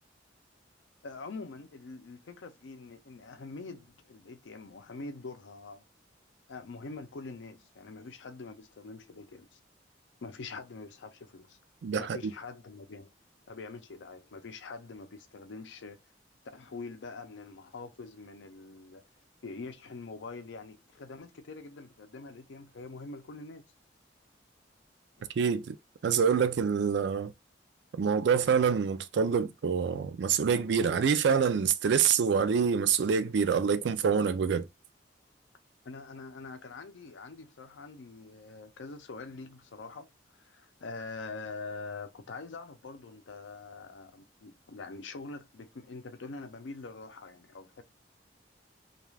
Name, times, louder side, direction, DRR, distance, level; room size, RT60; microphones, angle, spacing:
voice 1, 1.0-5.8 6.5-9.6 10.2-11.6 12.0-13.1 13.5-16.0 16.5-19.0 19.4-23.6 35.8-47.8, left 3 dB, 85° left, 0.5 m, -44 dB
voice 2, 11.8-12.2 25.4-25.8 26.0-27.3 27.9-34.7, right 6 dB, 70° right, 0.4 m, -26 dB
2.3 x 2.3 x 3.2 m
head